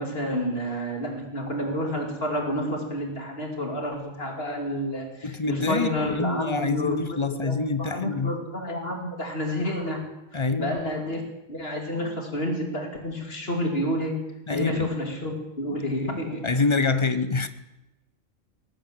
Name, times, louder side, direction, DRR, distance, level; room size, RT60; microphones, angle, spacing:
voice 1, 0.0-10.0 10.3-11.2 11.5-14.1 14.5-16.5, equal, 50° left, 2 dB, 2.8 m, -29 dB
voice 2, 5.2-8.4 10.3-10.7 14.5-14.9 15.7-15.8 16.4-17.5, left 3 dB, 25° left, 12 dB, 0.8 m, -26 dB
19.0 x 9.0 x 7.3 m, 0.97 s
omnidirectional pair, 1.3 m